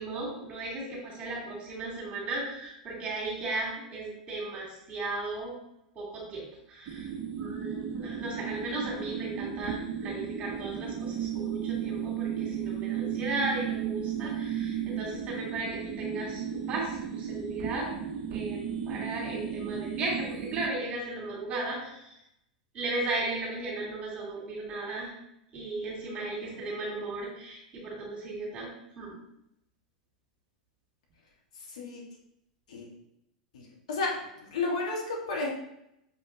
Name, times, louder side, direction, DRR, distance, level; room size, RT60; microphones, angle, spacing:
voice 1, 0.0-5.5 5.9-7.1 7.4-16.4 16.7-18.0 18.3-22.2 22.7-25.1 25.5-29.2, right 2 dB, 30° right, -4 dB, 2.4 m, -36 dB
sound 1, 6.9-20.7, right 8 dB, 45° right, 0.5 m, -35 dB
voice 2, 26.1-26.4 31.7-32.0 32.7-32.9 33.5-35.5, left 3 dB, 65° left, -2 dB, 1.6 m, -33 dB
6.6 x 5.2 x 2.8 m, 0.79 s
figure-of-eight pair, 90°, 4 cm